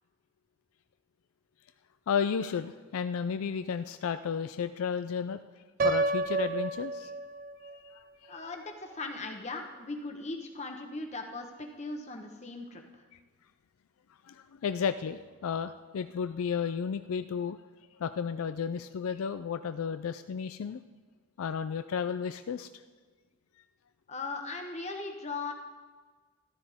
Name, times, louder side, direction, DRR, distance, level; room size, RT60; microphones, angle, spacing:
voice 1, 2.1-5.4 5.8-7.1 7.6-8.4 14.3-17.6 18.0-20.8 21.4-22.7, left 6 dB, 75° left, 10 dB, 0.4 m, -33 dB
Piano, 5.8-7.8, right 3 dB, 40° right, 0.4 m, -30 dB
voice 2, 8.3-13.0 24.1-25.5, left 3 dB, 30° left, 3 dB, 1.1 m, -38 dB
13.5 x 12.5 x 3.5 m, 1.4 s
head